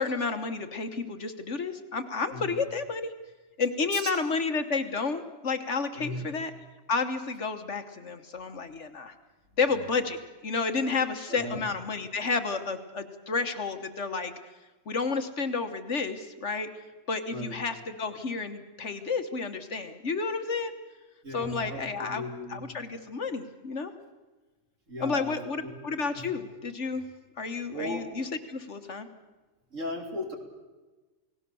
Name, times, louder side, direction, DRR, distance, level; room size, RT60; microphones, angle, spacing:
voice 1, 0.0-3.1 3.6-6.5 6.9-9.1 9.6-14.3 14.9-16.7 17.1-20.7 21.3-22.2 22.5-23.9 25.0-27.0 27.4-29.1, left 4 dB, 55° left, 8 dB, 1.6 m, -31 dB
voice 2, 2.3-2.6 3.9-4.1 5.9-6.3 11.3-11.6 17.3-17.5 21.2-21.8 22.1-22.6 24.9-25.7 26.1-26.2 27.7-28.1 29.7-30.4, left 1 dB, 60° right, 2 dB, 3.7 m, -36 dB
29.0 x 18.0 x 7.0 m, 1.2 s
omnidirectional pair, 1.5 m